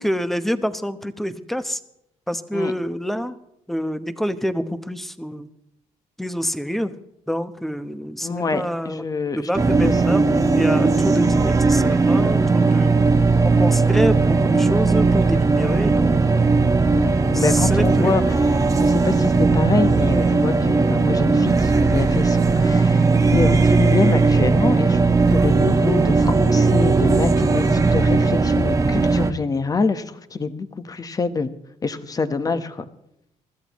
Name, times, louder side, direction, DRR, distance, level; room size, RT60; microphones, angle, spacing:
voice 1, 0.0-1.8 2.3-3.4 3.7-5.5 6.2-6.9 7.3-9.1 9.3-13.0 13.4-16.4 17.2-18.4 19.0-19.1 32.5-32.6, equal, ahead, 11 dB, 1.0 m, -27 dB
voice 2, 8.2-10.2 16.9-18.3 18.8-31.5 31.8-32.9, left 4 dB, 30° left, 11 dB, 1.1 m, -26 dB
sound 1, 9.6-29.3, right 4 dB, 25° right, 1.3 m, -18 dB
24.0 x 14.0 x 3.1 m, 0.81 s
cardioid pair, 105°, 13 cm